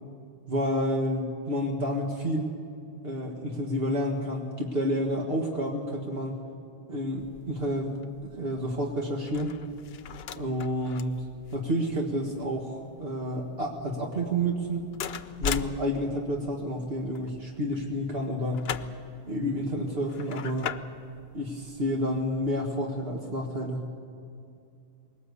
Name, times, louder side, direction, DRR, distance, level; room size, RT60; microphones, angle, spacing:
voice 1, 0.5-2.5 3.0-6.4 6.9-7.9 8.4-9.6 10.4-11.3 11.5-14.8 15.4-18.7 19.3-20.8 21.3-23.9, equal, 65° right, 0 dB, 1.9 m, -30 dB
sound 1, 7.2-22.6, left 7 dB, 70° left, 0.9 m, -41 dB
21.0 x 18.5 x 8.2 m, 2.5 s
omnidirectional pair, 1.1 m